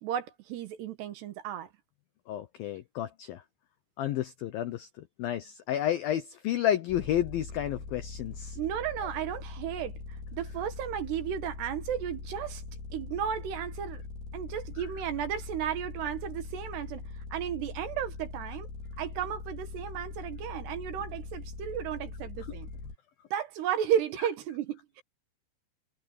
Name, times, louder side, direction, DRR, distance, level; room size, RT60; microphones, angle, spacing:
voice 1, 0.0-1.7 8.6-10.0 10.3-12.6 12.9-14.0 14.3-17.0 17.3-18.7 19.0-22.7 23.3-25.0, right 9 dB, 65° right, 3.2 m, -33 dB
voice 2, 2.3-3.4 4.0-8.6, left 11 dB, 85° left, 2.0 m, -31 dB
sound 1, 6.9-23.0, left 4 dB, 60° left, 7.1 m, -42 dB
omnidirectional pair, 5.5 m